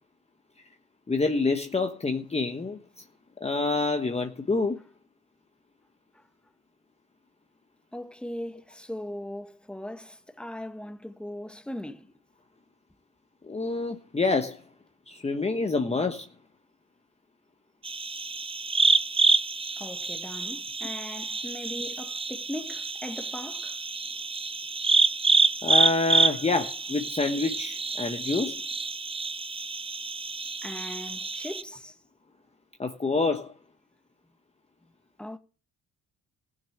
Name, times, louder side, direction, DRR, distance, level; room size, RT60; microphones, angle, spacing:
voice 1, 1.1-2.8 3.4-4.8 13.4-14.6 15.1-16.3 21.8-21.9 25.6-28.6 32.8-33.5, left 3 dB, 20° left, 1.4 m, -27 dB
voice 2, 7.9-12.1 19.8-23.8 30.6-31.9 35.2-35.4, left 1 dB, 5° left, 1.8 m, -39 dB
sound 1, 17.8-31.6, right 4 dB, 20° right, 0.7 m, -27 dB
16.0 x 6.9 x 8.7 m
cardioid pair, 90°, 30 cm